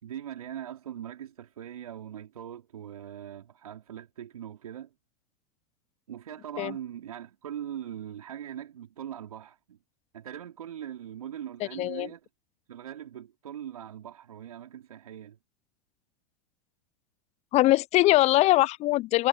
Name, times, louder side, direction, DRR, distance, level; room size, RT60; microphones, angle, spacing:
voice 1, 0.0-4.9 6.1-9.8 10.1-12.3 12.7-15.4, right 10 dB, 80° right, 4.0 m, -41 dB
voice 2, 17.5-19.3, left 17 dB, 35° left, 0.6 m, -22 dB
hypercardioid pair, 95°, 18 cm